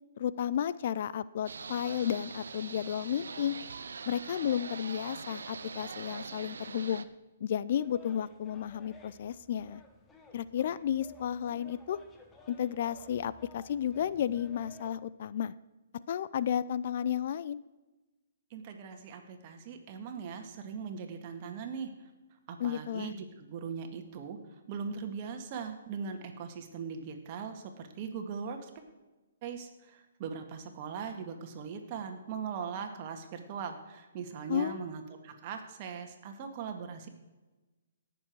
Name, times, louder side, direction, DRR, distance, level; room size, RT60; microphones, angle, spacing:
voice 1, 0.2-3.6 4.1-7.1 7.4-9.8 10.3-12.0 12.5-15.5 15.9-17.6 22.6-23.1 34.5-34.9, left 9 dB, 55° left, 17 dB, 0.4 m, -32 dB
sound 1, 1.5-7.0, right 5 dB, 75° right, 0.7 m, -43 dB
sound 2, 7.7-14.9, left 2 dB, 15° left, 1.4 m, -56 dB
voice 2, 18.5-21.9 22.5-24.4 24.7-28.7 29.4-37.1, right 6 dB, 40° right, 5 dB, 1.9 m, -40 dB
18.0 x 7.0 x 4.7 m, 1.1 s
hypercardioid pair, 140°, 0 cm